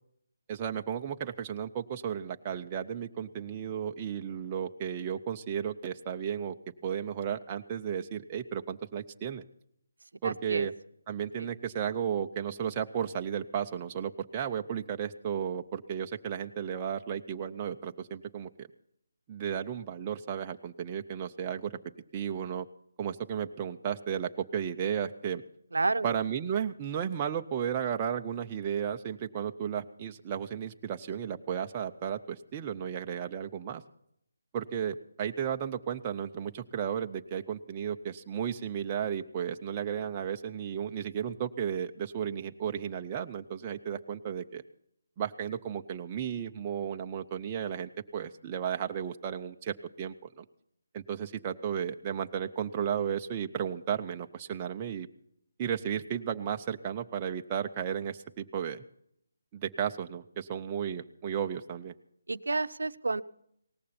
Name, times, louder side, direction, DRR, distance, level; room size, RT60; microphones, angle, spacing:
voice 1, 0.5-6.5 6.8-9.4 10.2-10.7 11.1-18.7 19.3-21.8 22.1-22.7 23.0-25.4 26.0-33.8 34.5-44.6 45.2-50.4 50.9-55.1 55.6-58.8 59.5-61.9, right 8 dB, 20° right, 4 dB, 0.5 m, -34 dB
voice 2, 10.2-10.7 25.7-26.1 62.3-63.2, right 3 dB, 90° right, 13 dB, 0.7 m, -30 dB
18.0 x 14.5 x 4.2 m, 0.73 s
hypercardioid pair, 170°, 0 cm